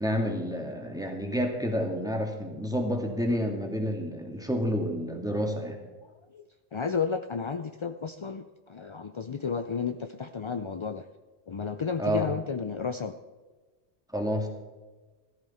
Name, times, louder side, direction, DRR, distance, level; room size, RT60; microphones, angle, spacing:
voice 1, 0.0-5.8 12.0-12.3 14.1-14.5, equal, 5° right, 2 dB, 2.0 m, -29 dB
voice 2, 6.7-11.0 11.5-13.1, left 5 dB, 45° left, 9 dB, 0.4 m, -32 dB
14.5 x 14.0 x 4.2 m, 1.3 s
omnidirectional pair, 1.2 m